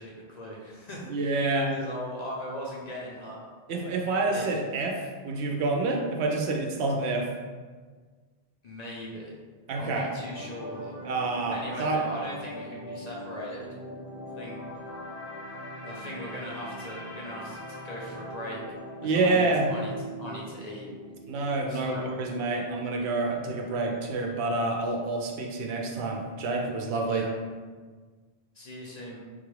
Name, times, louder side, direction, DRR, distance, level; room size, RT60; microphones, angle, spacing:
voice 1, 0.0-1.4 1.7-3.4 4.3-4.6 8.6-9.3 9.8-11.0 11.5-13.7 14.4-14.6 15.8-18.6 19.0-19.9 20.2-20.9 21.7-22.1 27.0-27.3 28.5-29.2, equal, 50° left, -4 dB, 0.6 m, -39 dB
voice 2, 1.1-1.7 3.7-7.3 9.7-10.1 11.0-12.0 19.0-19.7 21.3-27.3, right 3 dB, 80° right, 2 dB, 0.8 m, -28 dB
sound 1, 10.3-24.5 24.8-25.0, equal, 80° left, 1.1 m, -42 dB
3.8 x 2.4 x 3.1 m, 1.5 s
omnidirectional pair, 1.1 m